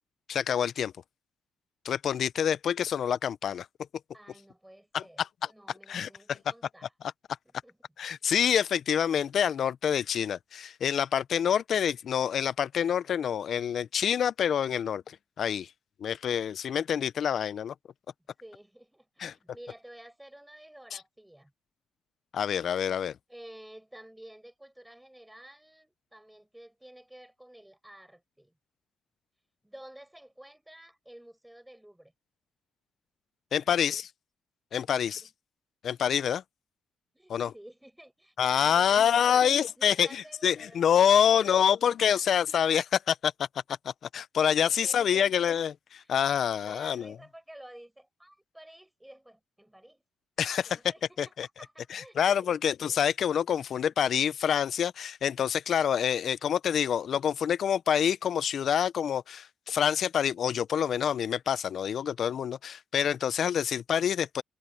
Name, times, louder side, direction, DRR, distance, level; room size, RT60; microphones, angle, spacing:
voice 1, 0.3-0.9 1.8-3.7 4.9-5.3 5.9-6.4 8.0-15.7 16.0-17.7 19.2-19.3 20.9-21.0 22.3-23.2 33.5-34.1 34.7-35.2 35.8-36.4 37.3-37.5 38.4-43.5 43.8-47.2 50.4-50.8 51.2-51.5 51.9-64.4, left 8 dB, 60° left, 0.7 m, -27 dB
voice 2, 4.1-6.9 7.4-7.8 18.4-21.5 23.3-28.5 29.6-32.1 33.6-34.0 34.8-35.3 37.1-42.3 44.6-45.3 46.0-46.1 46.5-50.0 50.6-52.6 53.6-53.8, right 1 dB, 5° right, 6.5 m, -51 dB
cardioid pair, 80°, 0 cm